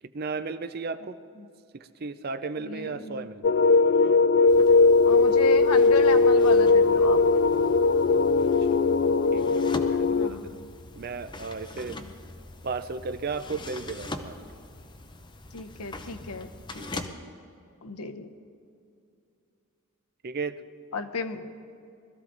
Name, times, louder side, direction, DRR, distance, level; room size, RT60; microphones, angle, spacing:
voice 1, 0.1-1.2 1.7-3.5 9.3-9.4 9.8-10.6 11.0-12.0 12.6-14.4 16.8-17.3 20.2-20.6, right 4 dB, 45° right, 12 dB, 0.5 m, -35 dB
voice 2, 2.6-3.3 5.0-7.2 10.1-10.7 11.9-12.1 15.5-16.5 16.9-17.1 17.8-18.3 20.9-21.5, left 4 dB, 90° left, 9 dB, 0.9 m, -34 dB
sound 1, 3.4-10.3, left 4 dB, 50° left, 0.3 m, -19 dB
sound 2, 4.5-17.1, left 2 dB, 20° left, 0.7 m, -42 dB
20.5 x 13.5 x 4.0 m, 2.6 s
head